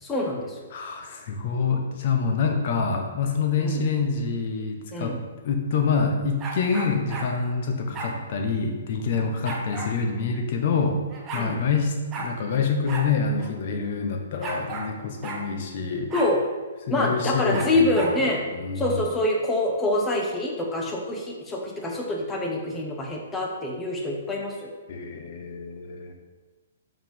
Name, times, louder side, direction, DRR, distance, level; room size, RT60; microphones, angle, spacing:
voice 1, 0.0-0.6 3.6-3.8 4.9-5.2 11.4-11.6 16.1-16.4 16.9-18.4 18.8-24.7, left 1 dB, 10° left, 0 dB, 1.1 m, -26 dB
voice 2, 0.7-5.2 5.4-11.0 11.3-16.1 16.9-19.0 24.9-26.1, left 5 dB, 50° left, 3 dB, 1.2 m, -26 dB
sound 1, 6.4-7.3 7.9-8.1 9.4-9.9 10.8-10.9 11.1-11.5 12.1-12.3 12.9-13.1 13.4-13.5 14.4-14.9 15.2-15.4 16.1-16.3 17.5-18.2, right 3 dB, 20° right, 1.1 m, -33 dB
5.8 x 4.9 x 5.4 m, 1.3 s
hypercardioid pair, 150°, 0 cm